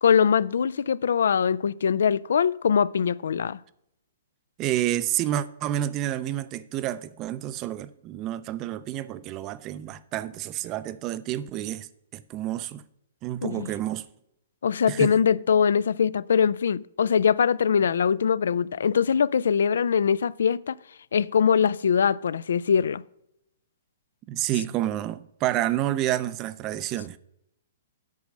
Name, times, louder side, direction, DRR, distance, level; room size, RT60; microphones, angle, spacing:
voice 1, 0.0-3.6 13.4-13.7 14.6-20.8 21.1-23.0, left 7 dB, 80° left, 0.3 m, -22 dB
voice 2, 4.6-11.9 12.1-12.8 13.2-14.1 14.9-15.1 24.3-27.2, right 13 dB, 25° right, 0.4 m, -29 dB
8.3 x 6.1 x 6.4 m
hypercardioid pair, 165°, 0 cm